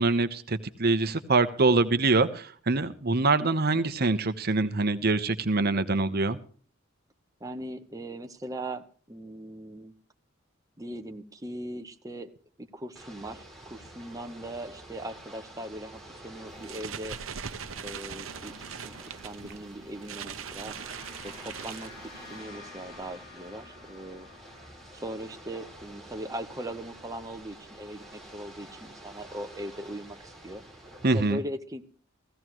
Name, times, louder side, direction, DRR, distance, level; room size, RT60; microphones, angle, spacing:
voice 1, 0.0-6.4 31.0-31.4, right 3 dB, 50° right, 11 dB, 1.0 m, -24 dB
voice 2, 7.4-9.9 10.8-12.3 12.6-17.2 17.8-18.5 18.8-20.8 21.2-24.3 24.9-30.6 31.1-31.9, right 1 dB, 15° right, 5 dB, 1.0 m, -39 dB
Ocean / Boat Water vehicle, 13.0-31.3, right 1 dB, ahead, 5.3 m, -49 dB
sound 1, 16.5-22.4, right 7 dB, 90° right, 0.9 m, -41 dB
sound 2, 19.8-28.2, left 3 dB, 65° left, 6.1 m, -52 dB
16.0 x 16.0 x 3.1 m, 0.44 s
head